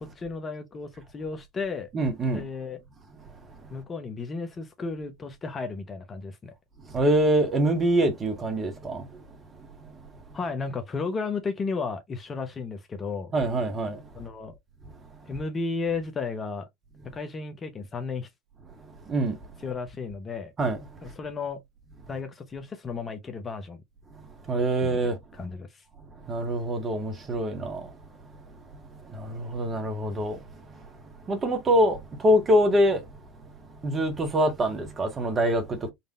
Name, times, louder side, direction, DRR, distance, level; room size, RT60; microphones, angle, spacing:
voice 1, 0.0-1.9 2.3-2.8 3.7-6.5 10.3-13.3 14.1-14.5 15.3-16.7 17.0-18.3 19.6-20.5 21.0-21.6 22.1-23.8 24.8-25.0 25.3-25.8, left 4 dB, 25° left, 0.9 m, -33 dB
voice 2, 1.9-2.4 6.9-9.2 9.8-9.9 13.3-14.0 19.1-19.4 20.6-20.8 24.5-25.2 26.3-28.0 29.0-30.4 30.7-30.8 31.3-33.0 33.8-35.9, right 1 dB, 30° right, 1.7 m, -25 dB
4.2 x 3.3 x 2.5 m
figure-of-eight pair, 75°, 0 cm